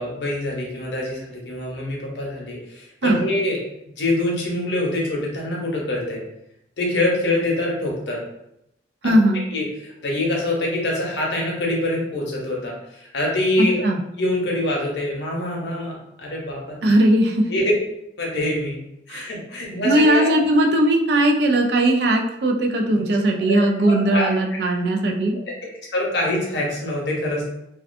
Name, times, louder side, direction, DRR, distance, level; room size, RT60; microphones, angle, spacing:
voice 1, 0.0-3.6 3.9-6.2 6.8-8.2 9.0-9.1 9.5-13.8 14.2-16.8 17.5-17.7 18.2-18.8 19.1-20.4 23.5-24.3 25.9-27.4, left 1 dB, 70° left, -2 dB, 0.7 m, -25 dB
voice 2, 9.0-9.4 13.8-14.0 16.8-17.5 19.1-19.3 19.8-25.4, right 1 dB, 60° right, 1 dB, 0.4 m, -18 dB
2.4 x 2.2 x 2.5 m, 0.82 s
head